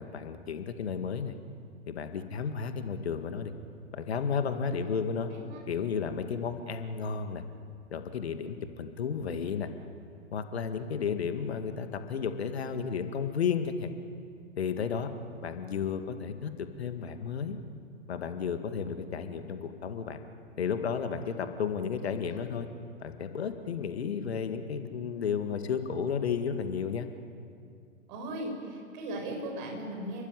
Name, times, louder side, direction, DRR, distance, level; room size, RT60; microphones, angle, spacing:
voice 1, 0.0-1.4 1.9-3.5 3.9-5.3 5.7-7.4 7.9-9.7 10.3-13.9 14.6-15.1 15.4-17.6 18.1-20.2 20.6-22.7 23.0-27.1, left 6 dB, 55° left, 8 dB, 2.1 m, -33 dB
voice 2, 5.3-5.6 21.3-21.4 22.0-22.4 28.1-30.2, right 1 dB, 35° right, 2 dB, 8.0 m, -38 dB
30.0 x 22.0 x 9.2 m, 2.3 s
figure-of-eight pair, 115°, 38 cm